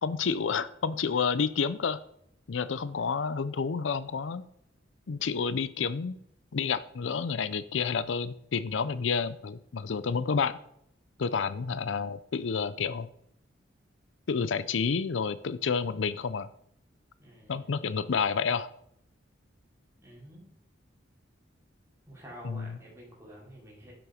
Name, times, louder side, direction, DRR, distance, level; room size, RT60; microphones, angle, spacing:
voice 1, 0.0-2.0 2.5-4.5 5.1-6.2 6.5-10.6 11.2-13.1 14.3-16.5 17.5-18.7 22.4-22.7, left 5 dB, 70° left, 15 dB, 0.5 m, -29 dB
voice 2, 17.2-17.7 20.0-20.5 22.1-23.9, equal, 15° right, -4 dB, 4.3 m, -49 dB
11.0 x 7.7 x 5.0 m, 0.73 s
head